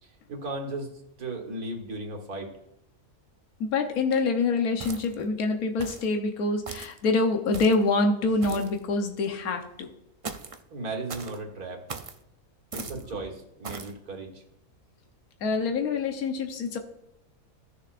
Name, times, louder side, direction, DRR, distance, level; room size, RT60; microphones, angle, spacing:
voice 1, 0.0-2.5 10.7-11.8 12.7-14.4, right 2 dB, 85° right, 1 dB, 2.2 m, -36 dB
voice 2, 3.6-9.9 15.4-16.8, left 3 dB, 75° left, 4 dB, 1.5 m, -26 dB
sound 1, 4.8-5.3 5.8-6.1 6.7-7.0 7.5-7.9 8.4-8.8 10.2-10.6 11.1-11.4 11.9-12.2 12.7-13.0 13.6-13.9, right 4 dB, 55° right, 0.3 m, -39 dB
16.0 x 6.9 x 2.6 m, 0.84 s
omnidirectional pair, 1.5 m